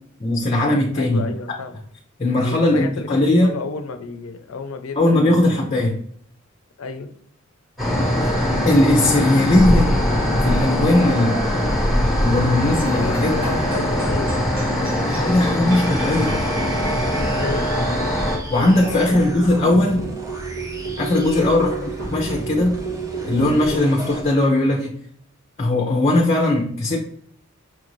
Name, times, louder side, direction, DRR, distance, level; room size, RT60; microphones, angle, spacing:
voice 1, 0.2-1.3 2.2-3.5 5.0-6.0 8.2-8.3 8.7-9.9 10.4-11.4 12.2-13.3 15.1-16.4 18.5-20.0 21.0-21.7 22.1-22.8 23.2-24.9 25.6-27.0, left 1 dB, 30° left, 0 dB, 0.6 m, -18 dB
voice 2, 1.0-1.8 2.4-5.4 6.8-7.1 12.8-14.3 14.7-15.4 17.3-17.9 18.9-20.2 21.2-21.5, left 3 dB, 80° left, 8 dB, 0.5 m, -32 dB
sound 1, 7.8-18.4, left 1 dB, ahead, 1.0 m, -21 dB
sound 2, 12.6-24.1, right 2 dB, 75° right, 1.4 m, -32 dB
sound 3, 15.7-24.3, right 1 dB, 15° right, 0.7 m, -35 dB
5.9 x 2.5 x 3.0 m, 0.62 s
head